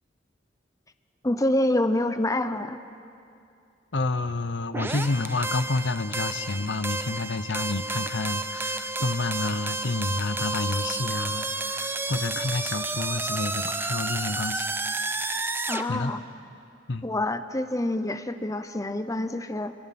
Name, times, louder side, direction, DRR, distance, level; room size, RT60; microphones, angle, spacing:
voice 1, 1.2-2.8 15.7-16.2 17.0-19.7, left 1 dB, 20° left, 10 dB, 0.8 m, -26 dB
voice 2, 3.9-14.8 15.9-16.1 16.9-17.1, left 3 dB, 85° left, 11 dB, 0.9 m, -29 dB
sound 1, 4.7-15.8, right 2 dB, 15° right, 0.7 m, -31 dB
28.5 x 23.5 x 6.0 m, 2.6 s
head